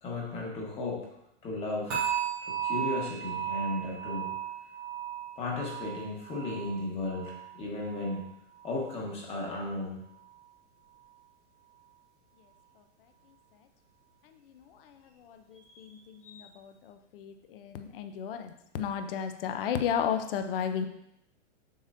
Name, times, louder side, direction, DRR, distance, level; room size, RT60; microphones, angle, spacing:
voice 1, 0.0-1.1 1.4-2.0 2.4-4.3 5.4-8.3 8.6-10.0 15.5-16.0 16.2-16.5, left 2 dB, 15° left, -2 dB, 1.2 m, -35 dB
sound 1, 1.9-9.0 9.3-9.7 10.2-10.3, right 9 dB, 5° right, 0.3 m, -36 dB
voice 2, 17.1-18.5 18.7-20.9, left 8 dB, 45° left, 8 dB, 0.6 m, -31 dB
7.8 x 6.5 x 2.6 m, 0.79 s
supercardioid pair, 165°, 38 cm